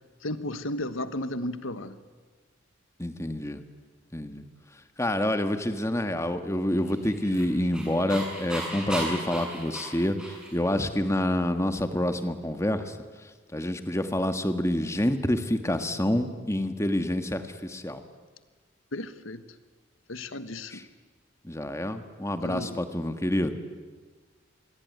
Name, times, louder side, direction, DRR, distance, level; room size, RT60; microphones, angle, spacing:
voice 1, 0.2-2.0 18.9-19.4 20.1-20.7 22.4-22.8, left 1 dB, 80° left, 12 dB, 1.4 m, -33 dB
voice 2, 3.0-3.6 4.1-4.4 5.0-12.9 13.5-18.0 20.7-20.8 21.4-23.5, left 1 dB, 15° left, 8 dB, 1.5 m, -27 dB
Dog, 6.9-10.7, right 1 dB, 5° right, 7.6 m, -36 dB
27.0 x 22.0 x 9.5 m, 1.4 s
head